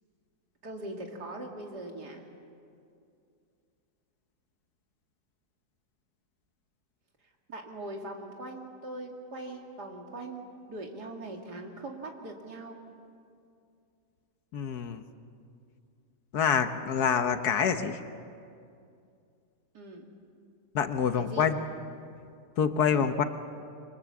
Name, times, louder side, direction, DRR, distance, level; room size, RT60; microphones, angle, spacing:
voice 1, 0.6-2.3 7.5-12.8 19.7-20.0 21.1-21.5 22.9-23.1, right 2 dB, 70° right, 1 dB, 3.1 m, -41 dB
voice 2, 14.5-15.0 16.3-18.0 20.7-21.6 22.6-23.2, left 7 dB, 65° left, 8 dB, 1.5 m, -26 dB
28.0 x 24.0 x 7.3 m, 2.4 s
omnidirectional pair, 1.8 m